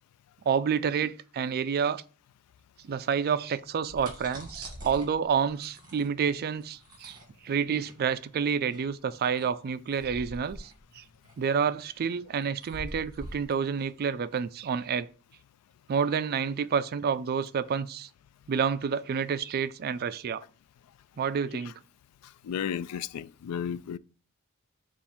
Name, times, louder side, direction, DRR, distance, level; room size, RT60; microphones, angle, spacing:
voice 1, 0.5-2.0 2.8-7.2 7.4-11.0 11.4-15.1 15.9-18.1 18.5-20.4 21.2-21.8, right 6 dB, 45° right, 0.3 m, -29 dB
sound 1, 3.6-15.0, equal, 20° right, 1.7 m, -46 dB
voice 2, 22.4-24.0, left 8 dB, 90° left, 0.3 m, -33 dB
7.0 x 2.5 x 5.5 m
head